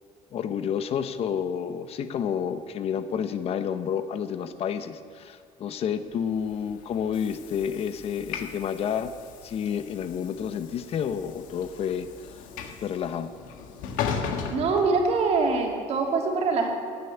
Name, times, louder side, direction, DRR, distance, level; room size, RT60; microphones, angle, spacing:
voice 1, 0.3-9.1 9.4-12.1 12.3-12.4 12.8-13.3, left 8 dB, 50° left, 11 dB, 0.9 m, -30 dB
Train / Sliding door, 6.3-15.6, left 6 dB, 85° left, 1.6 m, -37 dB
voice 2, 14.5-16.7, right 4 dB, 55° right, 1 dB, 2.8 m, -24 dB
16.0 x 8.0 x 9.7 m, 2.3 s
cardioid pair, 135°, 13 cm